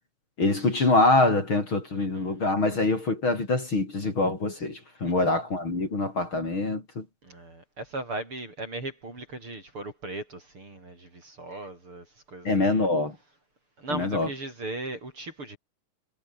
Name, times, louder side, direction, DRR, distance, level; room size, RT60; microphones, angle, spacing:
voice 1, 0.4-7.1 12.5-13.2 13.9-14.3, left 2 dB, 35° left, 5.4 m, -24 dB
voice 2, 1.9-2.4 5.0-5.1 7.2-12.9 13.8-15.6, right 2 dB, 40° right, 8.3 m, -38 dB
omnidirectional pair, 3.7 m